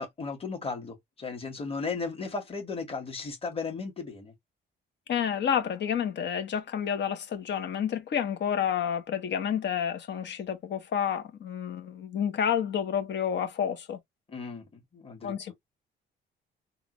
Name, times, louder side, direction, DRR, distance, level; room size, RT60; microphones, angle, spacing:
voice 1, 0.0-4.3 14.3-14.7 14.9-15.5, left 4 dB, 30° left, 1.6 m, -35 dB
voice 2, 5.1-14.0 15.2-15.5, left 8 dB, 60° left, 1.1 m, -29 dB
3.7 x 2.4 x 3.0 m
cardioid pair, 90°, 20 cm